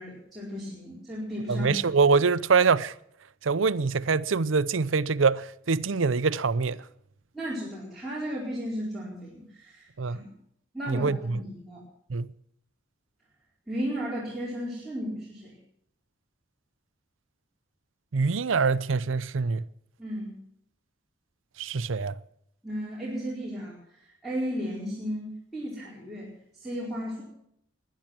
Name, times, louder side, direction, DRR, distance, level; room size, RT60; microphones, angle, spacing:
voice 1, 0.0-1.9 7.3-10.3 10.7-11.8 13.7-15.6 20.0-20.4 22.6-26.3 26.6-27.2, equal, ahead, 4.6 m, -34 dB
voice 2, 1.5-2.9 3.4-6.8 10.0-10.2 10.9-11.4 12.1-12.3 18.1-19.6 21.6-22.1, right 4 dB, 80° right, 0.6 m, -24 dB
21.0 x 10.5 x 6.0 m
head